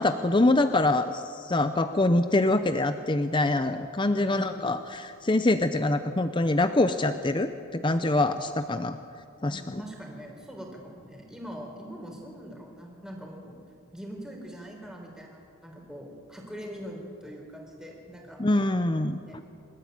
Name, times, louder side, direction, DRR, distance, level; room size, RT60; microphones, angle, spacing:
voice 1, 0.0-9.0 9.4-9.8 18.4-19.2, left 2 dB, 20° left, 9 dB, 0.6 m, -25 dB
voice 2, 4.1-4.7 9.4-13.6 13.9-18.4 19.2-19.4, equal, 5° right, 1 dB, 3.9 m, -42 dB
27.0 x 14.0 x 9.3 m, 2.4 s
head